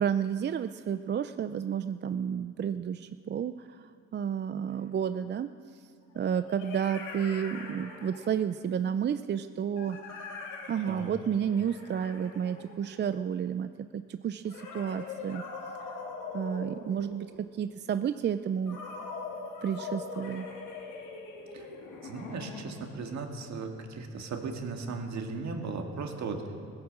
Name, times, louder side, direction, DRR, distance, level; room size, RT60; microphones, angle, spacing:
voice 1, 0.0-5.5 6.2-10.0 10.7-15.4 16.3-18.8 19.6-20.5, right 8 dB, 35° right, 11 dB, 0.4 m, -31 dB
sound 1, 4.7-4.8 6.1-8.5 9.8-13.2 14.4-17.5 18.7-22.9, left 4 dB, 90° left, 2.4 m, -42 dB
voice 2, 22.0-26.4, right 4 dB, 65° right, 3 dB, 2.0 m, -37 dB
17.0 x 9.7 x 7.5 m, 2.5 s
cardioid pair, 90°, 30 cm